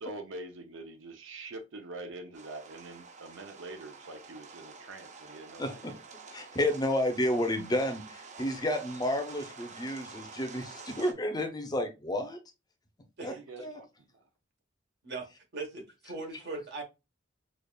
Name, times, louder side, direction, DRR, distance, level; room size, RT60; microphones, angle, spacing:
voice 1, 0.0-6.0 13.3-14.3, right 2 dB, 80° right, 0.6 m, -45 dB
sound 1, 2.3-11.1, right 4 dB, 40° right, 0.5 m, -49 dB
voice 2, 5.6-5.9 6.3-12.4 13.2-13.3 13.6-13.8, left 1 dB, 20° left, 0.6 m, -31 dB
voice 3, 15.5-16.8, right 3 dB, 60° right, 1.1 m, -39 dB
5.0 x 2.4 x 2.3 m
head